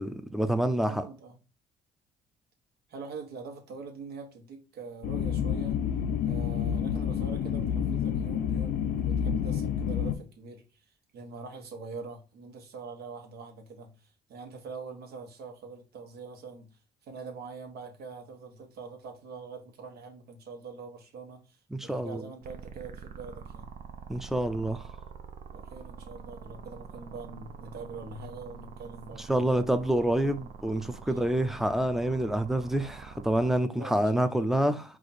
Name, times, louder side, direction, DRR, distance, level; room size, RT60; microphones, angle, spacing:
voice 1, 0.0-1.0 21.7-22.2 24.1-24.9 29.3-34.8, right 1 dB, ahead, 0.5 m, -27 dB
voice 2, 0.9-1.4 2.9-5.8 6.2-10.8 11.1-23.7 25.5-29.7 31.1-31.2 33.6-34.6, right 4 dB, 70° right, 1.4 m, -44 dB
sound 1, 5.0-10.1, left 8 dB, 65° left, 0.6 m, -29 dB
sound 2, 22.4-33.6, right 6 dB, 50° right, 0.7 m, -45 dB
4.8 x 2.5 x 4.3 m
cardioid pair, 110°, 17 cm